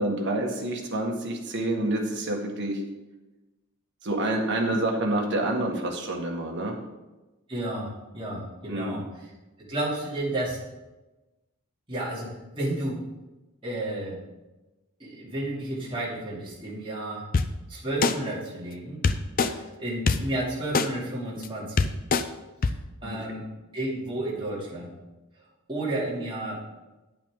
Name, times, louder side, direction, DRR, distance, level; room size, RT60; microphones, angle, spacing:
voice 1, 0.0-2.8 4.0-6.8 8.7-8.9 23.0-23.2, right 1 dB, 55° right, 1 dB, 1.6 m, -28 dB
voice 2, 7.5-9.0 9.6-10.6 11.9-13.1 13.6-14.2 15.0-17.3 17.7-19.1 19.4-21.9 22.6-22.7 23.0-24.9 25.7-26.6, right 1 dB, 25° right, -6 dB, 2.7 m, -32 dB
sound 1, 17.3-17.5 18.0-18.1 19.0-19.5 20.1-20.2 20.7-20.9 21.4-21.5 21.8-22.2 22.6-22.7, left 4 dB, 40° left, 0.5 m, -21 dB
10.0 x 8.7 x 3.7 m, 1.1 s
head